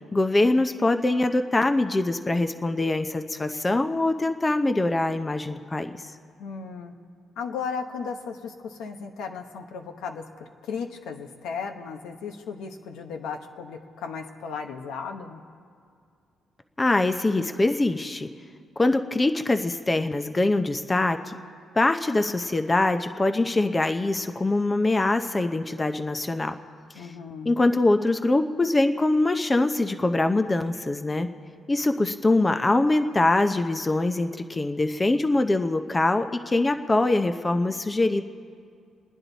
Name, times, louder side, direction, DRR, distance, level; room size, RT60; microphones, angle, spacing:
voice 1, 0.1-6.0 16.8-18.3 18.8-21.4 21.7-26.6 27.0-27.1 27.5-31.3 31.7-38.2, left 2 dB, 20° left, 8 dB, 0.7 m, -23 dB
voice 2, 6.4-6.9 7.4-10.3 10.6-15.4 26.9-27.6, left 5 dB, 85° left, 4 dB, 1.1 m, -35 dB
29.0 x 10.0 x 4.0 m, 2.2 s
cardioid pair, 90°, 0 cm